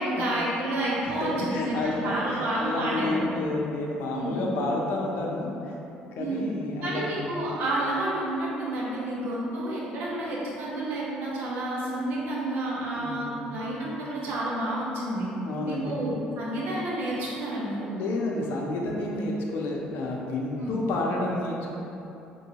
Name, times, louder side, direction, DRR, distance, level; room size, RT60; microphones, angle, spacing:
voice 1, 0.0-3.3 4.1-4.5 6.2-6.5 6.8-15.3 15.6-17.9 20.6-20.8, right 1 dB, 70° right, -6 dB, 1.0 m, -30 dB
voice 2, 1.0-5.8 6.1-7.2 13.0-13.6 15.4-15.9 17.8-21.8, left 2 dB, 75° left, -2 dB, 0.7 m, -30 dB
5.2 x 3.1 x 2.9 m, 2.9 s
supercardioid pair, 75°, 3 cm